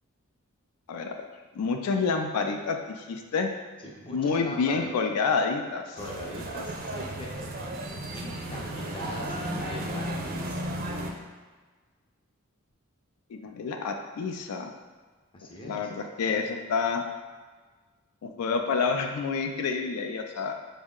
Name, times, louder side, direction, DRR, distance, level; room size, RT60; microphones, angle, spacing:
voice 1, 0.9-1.3 1.6-3.5 4.1-6.0 13.3-14.7 15.6-17.0 18.2-20.5, left 5 dB, 85° left, 4 dB, 0.3 m, -28 dB
voice 2, 3.8-4.9 6.0-7.5 8.1-10.6 15.3-15.9, left 1 dB, 25° left, -1 dB, 0.5 m, -41 dB
sound 1, 6.0-11.1, right 1 dB, 40° right, 0.4 m, -34 dB
4.3 x 2.1 x 3.6 m, 1.4 s
head